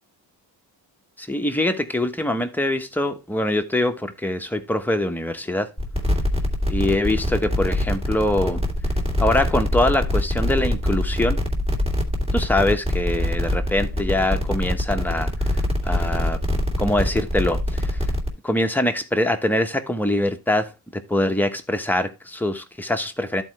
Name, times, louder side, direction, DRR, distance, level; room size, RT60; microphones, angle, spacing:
voice 1, 1.2-5.7 6.7-8.6 9.2-11.4 12.3-16.4 16.8-18.1 18.4-23.4, left 1 dB, 5° left, 1.1 m, -23 dB
sound 1, 5.8-18.3, left 1 dB, 15° right, 2.3 m, -24 dB
13.5 x 4.5 x 3.1 m
cardioid pair, 120°, 39 cm